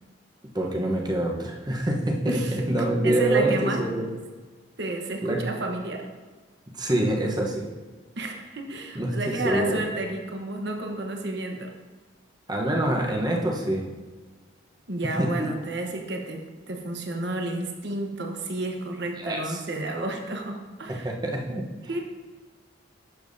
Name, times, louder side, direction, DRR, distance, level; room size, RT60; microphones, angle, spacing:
voice 1, 0.5-4.0 5.2-5.4 6.7-7.7 8.9-9.8 12.5-13.9 15.2-15.5 19.1-19.6 20.9-21.6, right 1 dB, 20° right, 0 dB, 1.0 m, -26 dB
voice 2, 2.3-3.9 4.8-6.1 8.2-11.7 14.9-21.1 21.9-22.0, right 2 dB, 55° right, 3 dB, 1.1 m, -31 dB
11.5 x 7.1 x 2.7 m, 1.4 s
head